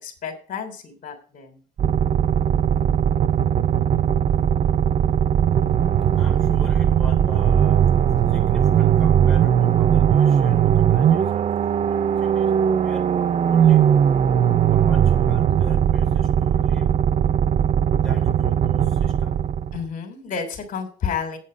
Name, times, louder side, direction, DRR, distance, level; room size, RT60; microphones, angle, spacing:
voice 1, 0.0-1.6 19.7-21.4, left 6 dB, 50° left, 6 dB, 3.1 m, -31 dB
sound 1, 1.8-19.8, right 9 dB, 40° right, 0.5 m, -19 dB
voice 2, 2.2-2.6 6.1-7.8 8.2-13.9 14.7-16.9 18.0-19.4, left 1 dB, 5° left, 1 dB, 3.6 m, -43 dB
8.7 x 8.4 x 5.2 m, 0.39 s
cardioid pair, 110°, 17 cm